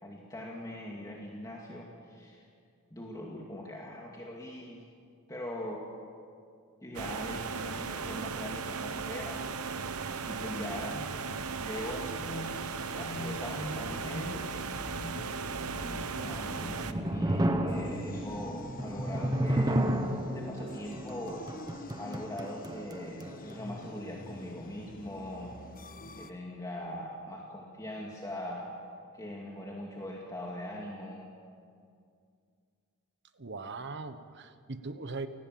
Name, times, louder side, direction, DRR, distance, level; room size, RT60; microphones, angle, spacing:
voice 1, 0.0-2.4 2.9-4.8 5.3-5.9 6.8-9.5 10.3-11.1 11.6-12.1 12.9-14.5 15.8-19.9 20.3-21.5 22.0-25.5 26.2-28.8 29.1-31.3, left 1 dB, 15° left, -2 dB, 2.4 m, -41 dB
sound 1, 6.9-16.9, right 5 dB, 75° right, 1.1 m, -37 dB
sound 2, 10.3-26.3, left 2 dB, 40° left, 1.3 m, -46 dB
sound 3, 16.6-23.6, right 1 dB, 20° right, 1.4 m, -32 dB
voice 2, 33.4-35.3, right 3 dB, 55° right, 10 dB, 1.2 m, -40 dB
29.0 x 19.0 x 7.7 m, 2.3 s
head